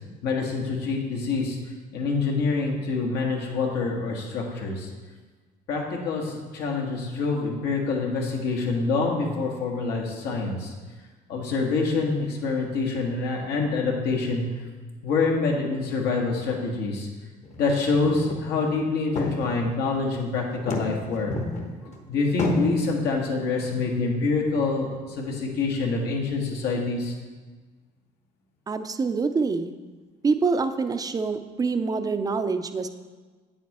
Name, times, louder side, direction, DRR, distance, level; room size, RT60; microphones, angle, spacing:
voice 1, 0.2-1.6 1.9-4.9 5.7-10.7 11.3-14.4 15.0-17.1 17.6-21.3 22.1-27.1, left 3 dB, 80° left, -1 dB, 1.5 m, -26 dB
sound 1, 17.4-17.7 18.0-18.5 18.8-18.9 19.2-20.0 20.5-22.0 22.4-22.8, left 2 dB, 45° left, 1.0 m, -30 dB
voice 2, 28.7-29.7 30.2-32.9, right 4 dB, 20° right, 9 dB, 0.5 m, -25 dB
8.4 x 7.3 x 3.0 m, 1.4 s
cardioid pair, 110°, 17 cm